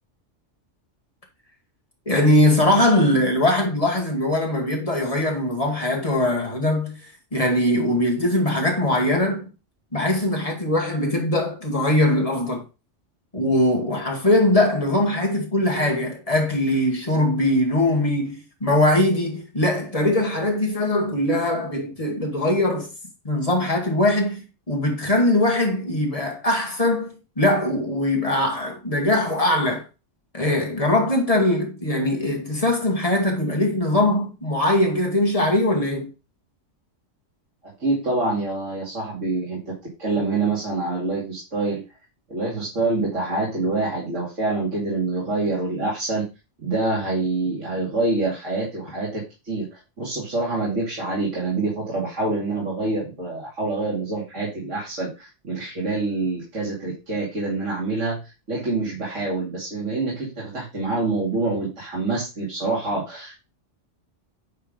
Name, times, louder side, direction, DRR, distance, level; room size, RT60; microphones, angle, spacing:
voice 1, 2.1-9.5 9.9-12.6 13.3-22.9 23.2-29.9 30.3-36.1, left 1 dB, 30° left, 2.2 m, -21 dB
voice 2, 37.8-39.7 40.0-41.8 42.3-46.3 46.6-58.2 58.5-63.3, right 3 dB, 75° right, 2.8 m, -26 dB
9.3 x 3.7 x 5.1 m
omnidirectional pair, 1.3 m